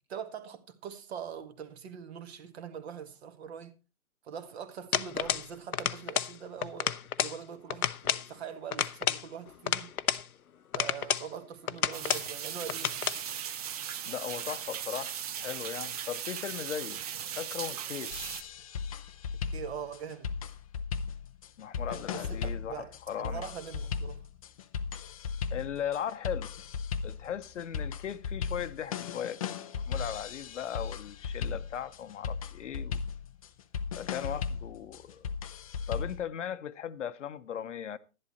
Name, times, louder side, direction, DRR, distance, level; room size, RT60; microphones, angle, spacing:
voice 1, 0.1-3.7 4.2-9.9 10.7-13.1 19.5-20.5 21.9-22.4 22.7-24.3, right 8 dB, 45° right, 1.8 m, -42 dB
sound 1, 4.9-5.5 5.7-6.3 6.6-7.4 7.7-8.3 8.7-10.3 10.7-11.3 11.7-12.3 12.7-13.2, left 9 dB, 80° left, 0.8 m, -30 dB
sound 2, 11.9-18.4, right 9 dB, 25° right, 0.7 m, -38 dB
voice 2, 14.0-17.0 17.3-18.2 21.6-23.4 25.5-26.5 27.0-29.4 29.7-33.0 34.0-35.3 35.9-38.0, left 9 dB, 55° left, 0.9 m, -38 dB
sound 3, 18.1-36.2, left 6 dB, 25° left, 0.5 m, -37 dB
11.5 x 11.0 x 4.2 m
hypercardioid pair, 135°, 43 cm